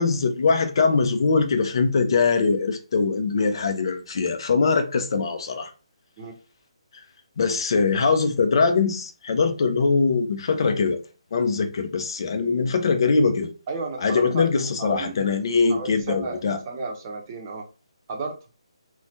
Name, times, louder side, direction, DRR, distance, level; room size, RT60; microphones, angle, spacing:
voice 1, 0.0-5.7 6.9-7.0 7.4-11.0 11.3-13.5 14.0-16.6, left 4 dB, 50° left, 0.6 m, -22 dB
voice 2, 13.7-15.3 15.7-17.6 18.1-18.4, right 3 dB, 25° right, 0.7 m, -33 dB
3.1 x 2.1 x 2.8 m
hypercardioid pair, 165°, 3 cm